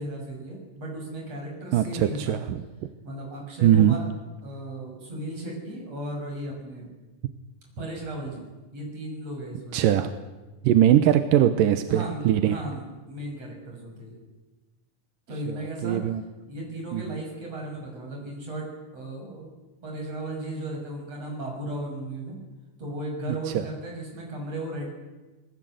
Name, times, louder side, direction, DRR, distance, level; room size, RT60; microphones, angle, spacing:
voice 1, 0.0-2.5 3.0-4.1 4.4-6.9 7.8-8.4 8.7-9.8 11.9-14.2 15.3-16.0 16.4-19.5 19.8-22.4 22.8-24.9, right 1 dB, 50° right, 1 dB, 7.6 m, -35 dB
voice 2, 1.7-2.6 3.6-4.0 9.7-10.1 10.6-12.6 15.5-15.6 15.8-16.2 16.9-17.2 23.5-23.6, right 11 dB, 90° right, 9 dB, 2.6 m, -21 dB
27.0 x 19.0 x 8.0 m, 1.2 s
omnidirectional pair, 3.7 m